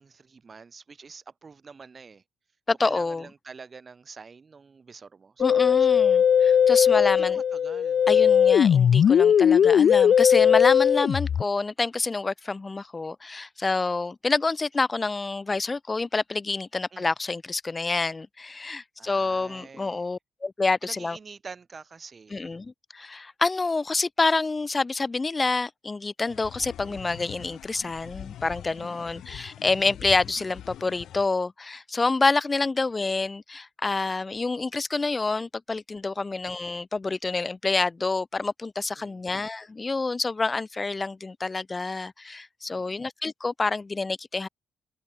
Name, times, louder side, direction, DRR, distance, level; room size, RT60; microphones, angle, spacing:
voice 1, 0.0-2.2 2.8-6.2 6.9-8.0 16.9-17.1 19.0-20.1 20.8-22.6 28.8-29.1 36.2-36.4 39.0-39.3 42.7-43.0, right 5 dB, 30° right, 5.7 m, -46 dB
voice 2, 2.7-3.2 5.4-7.3 8.1-21.2 22.3-44.5, left 3 dB, 20° left, 0.7 m, -27 dB
Musical instrument, 5.4-11.4, left 8 dB, 50° left, 0.4 m, -19 dB
sound 1, 26.3-31.3, left 11 dB, 70° left, 2.2 m, -43 dB
cardioid pair, 140°, 0 cm